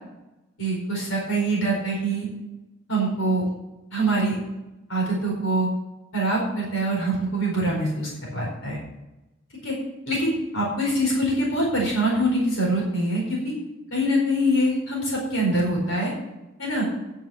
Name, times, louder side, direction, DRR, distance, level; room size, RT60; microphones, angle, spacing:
voice 1, 0.6-2.3 2.9-3.4 3.9-4.4 4.9-5.7 6.1-8.8 9.6-9.7 10.1-13.5 13.9-16.1 16.6-16.9, right 1 dB, 80° left, -2 dB, 4.6 m, -24 dB
9.3 x 7.4 x 7.3 m, 0.99 s
head